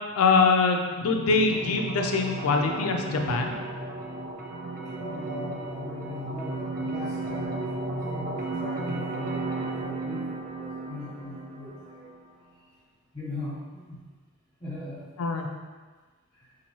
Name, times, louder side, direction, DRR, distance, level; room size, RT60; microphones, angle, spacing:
voice 1, 0.1-3.6 15.2-15.5, left 4 dB, 75° left, 3 dB, 0.4 m, -23 dB
sound 1, 1.0-12.0, right 3 dB, 40° right, 0.5 m, -34 dB
voice 2, 4.9-12.1 13.1-14.1 14.6-15.1 16.3-16.5, left 2 dB, 20° left, -10 dB, 1.0 m, -39 dB
4.1 x 2.6 x 3.0 m, 1.4 s
head